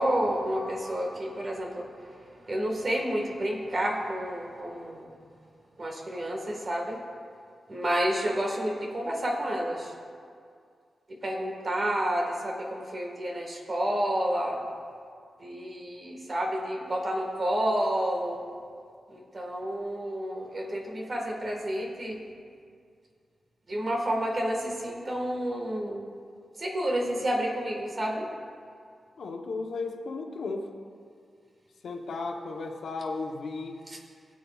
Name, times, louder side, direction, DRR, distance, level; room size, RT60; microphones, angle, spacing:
voice 1, 0.0-5.1 5.8-7.0 7.7-9.9 11.1-14.6 15.4-18.4 19.1-22.3 23.7-26.1 26.6-28.3 33.9-34.0, equal, 40° right, 0 dB, 1.5 m, -30 dB
voice 2, 29.2-30.7 31.8-33.8, left 3 dB, 90° left, 3 dB, 0.8 m, -35 dB
18.5 x 8.3 x 2.3 m, 2.2 s
wide cardioid pair, 130°, 0 cm